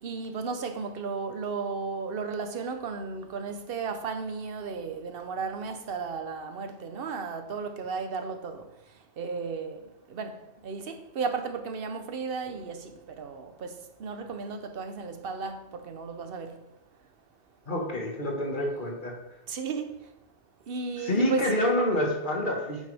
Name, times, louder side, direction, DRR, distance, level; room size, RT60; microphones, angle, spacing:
voice 1, 0.0-8.7 9.2-10.4 10.6-16.6 19.5-20.0 20.7-21.5, right 5 dB, 60° right, 1.0 m, -34 dB
voice 2, 17.7-19.2 21.0-22.8, left 1 dB, 45° left, 1.7 m, -27 dB
9.2 x 7.4 x 3.4 m
omnidirectional pair, 1.2 m